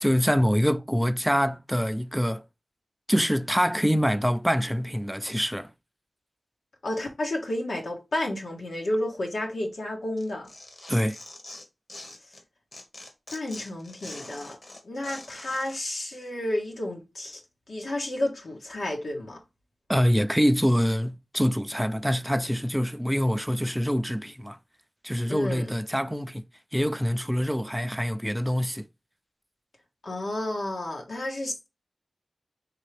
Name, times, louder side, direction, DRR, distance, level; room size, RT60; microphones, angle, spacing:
voice 1, 0.0-2.4 3.1-5.7 10.9-11.2 19.9-24.6 25.0-26.4 26.7-28.9, equal, ahead, 0.4 m, -25 dB
voice 2, 6.8-10.5 13.3-14.6 14.8-17.4 17.7-19.4 25.3-25.7 30.0-31.7, left 1 dB, 85° left, 1.4 m, -31 dB
Tearing, 10.2-12.4 12.7-15.8, left 2 dB, 50° left, 1.2 m, -44 dB
4.4 x 3.4 x 3.2 m
wide cardioid pair, 85°, 0 cm